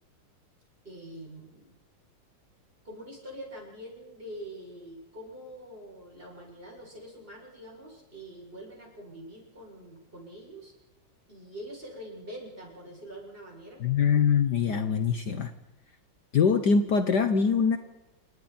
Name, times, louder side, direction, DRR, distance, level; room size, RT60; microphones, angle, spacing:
voice 1, 0.8-1.8 2.8-10.7 11.3-13.8, equal, 25° right, -1 dB, 7.5 m, -44 dB
voice 2, 13.8-15.5 16.3-17.8, left 6 dB, 55° left, 8 dB, 1.6 m, -23 dB
29.0 x 27.5 x 4.4 m, 0.98 s
omnidirectional pair, 2.3 m